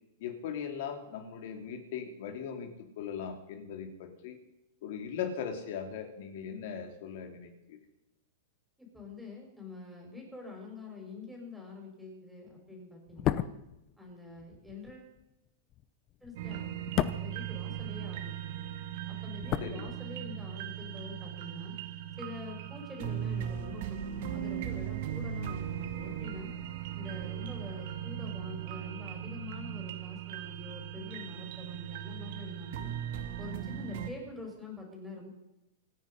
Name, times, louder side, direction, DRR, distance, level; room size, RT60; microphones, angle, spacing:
voice 1, 0.2-4.4 4.8-7.8 19.6-19.9, left 7 dB, 60° left, 4 dB, 3.4 m, -39 dB
voice 2, 8.8-13.5 14.0-15.1 16.2-18.5 19.1-21.7 22.2-26.5 27.0-32.9 33.4-35.3, left 3 dB, ahead, -1 dB, 5.7 m, -46 dB
sound 1, 13.1-18.4 18.6-20.5 20.7-20.9, left 12 dB, 30° left, 0.8 m, -35 dB
sound 2, 16.4-34.1, right 10 dB, 60° right, 2.3 m, -38 dB
26.0 x 9.8 x 5.6 m, 0.92 s
supercardioid pair, 150°, 0 cm